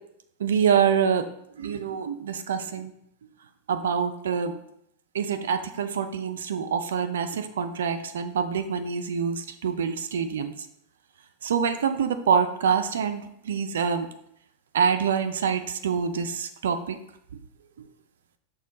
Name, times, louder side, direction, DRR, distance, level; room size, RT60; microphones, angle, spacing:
voice 1, 0.4-1.3 1.6-2.9 3.7-4.5 5.1-10.5 11.4-14.1 14.7-17.0, right 7 dB, 60° right, 8 dB, 0.3 m, -26 dB
6.1 x 2.3 x 3.7 m, 0.73 s
figure-of-eight pair, 90°, 0 cm